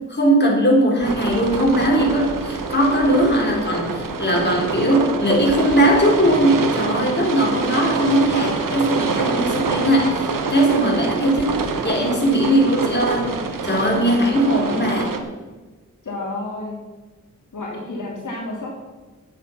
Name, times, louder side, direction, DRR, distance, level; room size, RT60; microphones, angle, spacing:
voice 1, 0.1-13.3 13.6-15.1, right 1 dB, 35° left, -2 dB, 4.0 m, -19 dB
sound 1, 1.0-15.2, right 4 dB, 80° right, 1.3 m, -26 dB
voice 2, 14.4-15.0 16.0-16.8 17.5-18.7, left 2 dB, 70° left, -3 dB, 3.0 m, -30 dB
10.5 x 9.4 x 5.9 m, 1.3 s
wide cardioid pair, 65°, 32 cm